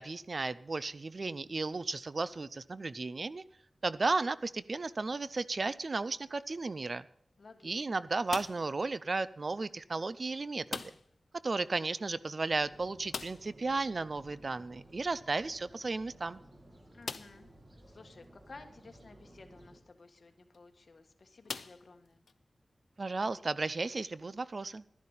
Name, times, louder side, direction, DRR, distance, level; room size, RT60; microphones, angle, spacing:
voice 1, 0.0-3.4 3.8-7.0 7.6-10.8 11.4-16.4 23.0-24.8, right 3 dB, 50° right, 17 dB, 0.5 m, -34 dB
voice 2, 7.4-8.0 16.9-17.5 17.9-22.2, left 3 dB, 60° left, 7 dB, 1.5 m, -55 dB
sound 1, 8.3-8.8 10.7-11.2 11.5-11.6 11.9-12.0 13.1-13.6 15.4-15.5 16.1-16.2 17.0-17.5 18.2-18.3 20.4-20.6 21.5-22.3, left 5 dB, 80° left, 0.6 m, -42 dB
sound 2, 12.5-19.8, right 1 dB, 35° right, 2.1 m, -57 dB
12.0 x 10.5 x 5.5 m, 0.68 s
wide cardioid pair, 85°, 0 cm